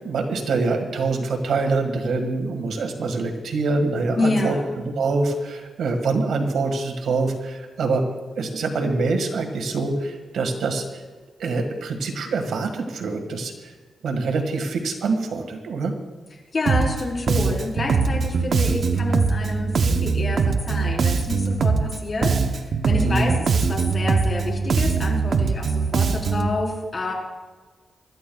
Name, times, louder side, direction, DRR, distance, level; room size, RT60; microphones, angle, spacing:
voice 1, 0.0-4.6 5.0-8.0 8.4-10.8 11.4-13.7 14.0-15.9 23.0-23.3, right 3 dB, 80° right, 4 dB, 1.8 m, -25 dB
voice 2, 4.2-4.7 16.5-27.1, left 2 dB, 40° left, -2 dB, 4.1 m, -28 dB
Bass guitar, 16.7-17.0 17.3-22.0 22.2-26.5, right 5 dB, 60° right, 0.8 m, -22 dB
25.5 x 13.5 x 2.3 m, 1.3 s
cardioid pair, 110°, 0 cm